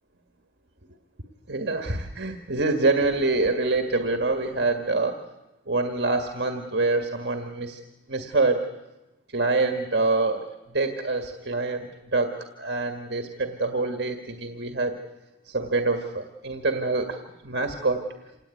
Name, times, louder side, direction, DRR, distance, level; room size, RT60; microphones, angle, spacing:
voice 1, 1.5-5.2 5.7-7.8 8.1-8.7 9.3-10.5 10.7-15.0 15.5-17.2 17.4-18.1, right 3 dB, 60° right, 5 dB, 1.8 m, -25 dB
27.5 x 18.5 x 9.3 m, 1.0 s
head